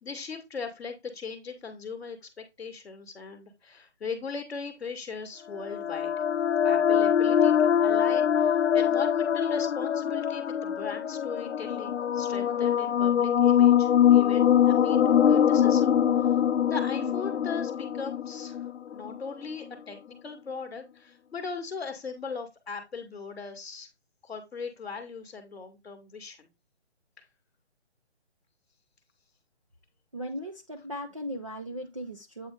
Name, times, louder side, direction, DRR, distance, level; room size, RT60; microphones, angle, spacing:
voice 1, 0.0-6.1 6.6-15.9 16.2-16.3 16.7-23.9 24.2-26.5 27.2-27.3, left 5 dB, ahead, 0.9 m, -39 dB
sound 1, 5.5-19.2, left 9 dB, 80° left, 0.5 m, -23 dB
voice 2, 30.1-32.5, equal, 30° right, 0.5 m, -37 dB
8.3 x 3.3 x 4.9 m
hypercardioid pair, 170°, 34 cm